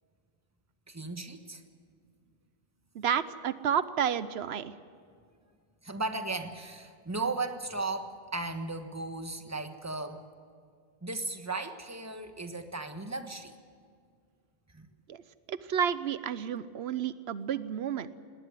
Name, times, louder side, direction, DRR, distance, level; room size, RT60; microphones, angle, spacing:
voice 1, 0.9-1.6 5.8-10.2 11.0-13.5 14.7-14.9, right 3 dB, 15° right, 7 dB, 1.3 m, -36 dB
voice 2, 2.9-4.7 15.1-15.2 15.5-18.1, right 8 dB, 90° right, 15 dB, 1.0 m, -31 dB
19.5 x 18.5 x 10.0 m, 2.1 s
omnidirectional pair, 1.0 m